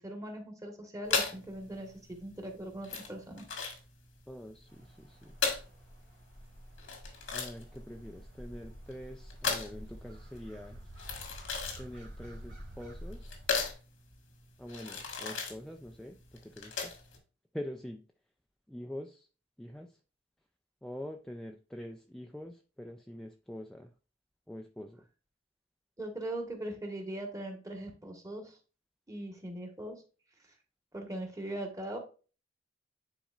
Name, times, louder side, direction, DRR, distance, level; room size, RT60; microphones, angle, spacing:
voice 1, 0.0-3.4 26.0-28.6 29.1-29.9 30.9-32.0, right 1 dB, 15° right, 2 dB, 1.4 m, -40 dB
sound 1, 1.1-17.2, left 5 dB, 90° left, 1.8 m, -37 dB
voice 2, 4.3-5.4 7.3-10.8 11.8-13.3 14.6-16.2 16.4-16.9 17.5-18.0 18.7-19.3 19.6-19.9 20.8-23.9 24.5-25.0, left 1 dB, 5° left, 3 dB, 0.4 m, -44 dB
sound 2, 4.7-13.7, equal, 70° right, 1.8 m, -49 dB
10.0 x 4.2 x 2.4 m, 0.36 s
head